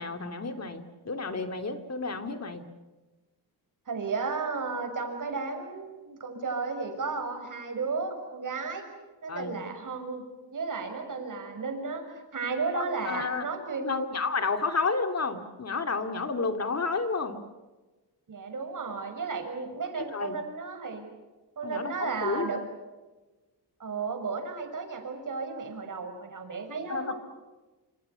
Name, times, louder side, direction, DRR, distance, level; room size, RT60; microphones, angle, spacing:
voice 1, 0.0-2.6 9.3-9.5 12.7-13.5 13.8-17.4 20.1-20.4 21.6-22.6 26.9-27.1, left 4 dB, 40° left, 8 dB, 2.6 m, -31 dB
voice 2, 3.9-8.8 9.2-10.2 10.5-14.0 18.3-21.1 21.6-22.6 23.8-27.1, right 4 dB, 45° right, 5 dB, 6.5 m, -34 dB
28.0 x 27.0 x 7.0 m, 1.2 s
cardioid pair, 120°, 42 cm